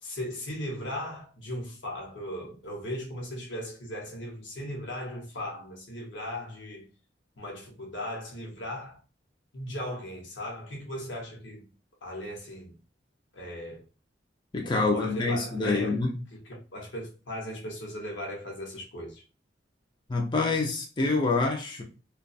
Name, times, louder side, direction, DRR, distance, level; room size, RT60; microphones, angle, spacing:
voice 1, 0.0-6.9 7.4-9.0 9.5-11.6 12.0-12.7 13.3-13.8 14.6-16.0 16.3-19.2, left 1 dB, 70° left, 0.9 m, -37 dB
voice 2, 14.5-16.2 20.1-21.8, left 3 dB, 25° left, 0.4 m, -26 dB
2.3 x 2.2 x 2.5 m
head